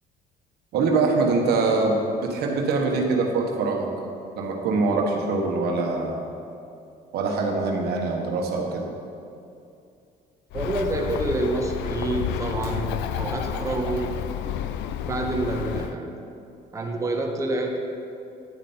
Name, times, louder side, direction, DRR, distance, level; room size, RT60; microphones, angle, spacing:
voice 1, 0.7-3.9 4.4-6.2 7.1-8.9, right 3 dB, 70° right, 1 dB, 1.3 m, -23 dB
Bird, 10.5-16.0, left 10 dB, 85° left, 0.4 m, -30 dB
voice 2, 10.5-14.2 15.0-16.2 16.7-17.8, right 2 dB, 20° right, 1 dB, 1.0 m, -27 dB
10.0 x 7.1 x 4.3 m, 2.6 s
cardioid pair, 110°, 17 cm